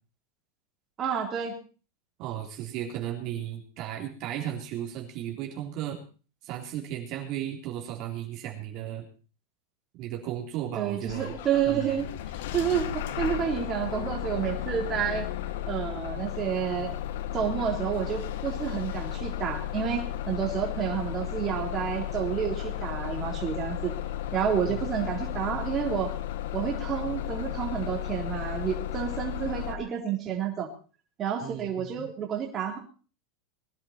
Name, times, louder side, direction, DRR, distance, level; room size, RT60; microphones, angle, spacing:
voice 1, 1.0-1.5 10.8-12.1 12.5-15.3 15.7-17.0 17.3-23.9 24.3-26.1 26.5-30.7 31.2-32.8, right 8 dB, 35° right, 0 dB, 3.6 m, -29 dB
voice 2, 2.2-6.0 6.4-9.1 10.0-11.3 11.6-11.9 24.7-24.9 31.4-32.1, right 11 dB, 50° right, 1 dB, 3.7 m, -35 dB
Bus / Engine starting, 11.1-29.7, left 12 dB, 70° left, 1.2 m, -34 dB
21.0 x 11.0 x 4.4 m, 0.37 s
hypercardioid pair, 100°, 0 cm